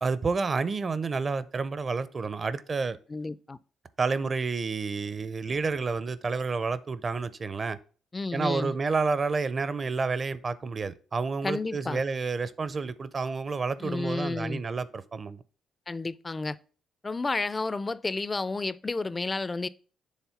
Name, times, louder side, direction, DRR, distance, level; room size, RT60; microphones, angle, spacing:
voice 1, 0.0-3.0 4.0-7.8 8.3-15.4, right 4 dB, 35° right, 0.5 m, -30 dB
voice 2, 3.1-3.6 8.1-8.7 11.4-12.0 13.8-14.6 15.9-16.6 17.0-19.7, left 3 dB, 25° left, 0.4 m, -31 dB
7.2 x 3.5 x 5.6 m
cardioid pair, 90°, 0 cm